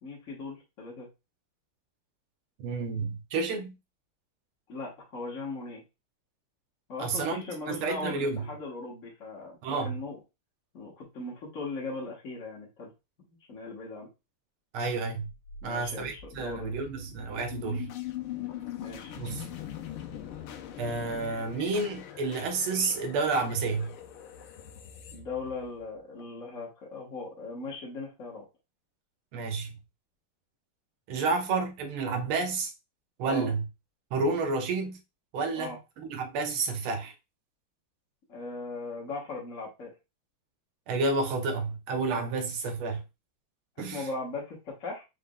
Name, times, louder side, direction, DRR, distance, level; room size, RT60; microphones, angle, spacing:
voice 1, 0.0-1.1 4.7-5.8 6.9-10.2 10.7-12.9 13.2-14.1 15.6-16.7 18.3-19.1 25.1-28.4 33.3-33.5 35.5-35.8 38.3-39.9 43.8-45.0, left 3 dB, 40° left, 1.6 m, -39 dB
voice 2, 2.6-3.7 7.0-8.5 9.6-10.0 14.7-15.3 15.6-17.9 19.2-19.5 20.8-23.9 29.3-29.7 31.1-32.7 33.2-33.6 34.1-35.0 35.3-37.1 40.9-43.0 43.8-44.1, right 3 dB, 90° right, 1.8 m, -30 dB
sound 1, 15.4-26.2, left 10 dB, 85° left, 1.6 m, -42 dB
5.1 x 3.5 x 2.3 m
omnidirectional pair, 2.3 m